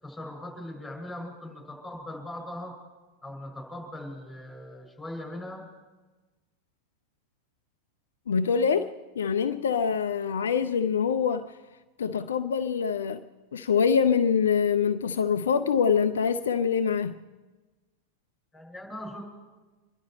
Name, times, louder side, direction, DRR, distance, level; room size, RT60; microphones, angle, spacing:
voice 1, 0.0-2.7 3.2-5.7 18.5-19.2, left 1 dB, 10° left, 5.8 m, -40 dB
voice 2, 8.3-11.5 12.0-13.2 13.5-17.2, left 6 dB, 65° left, 0.5 m, -25 dB
25.5 x 11.5 x 4.4 m
figure-of-eight pair, 90°, 0 cm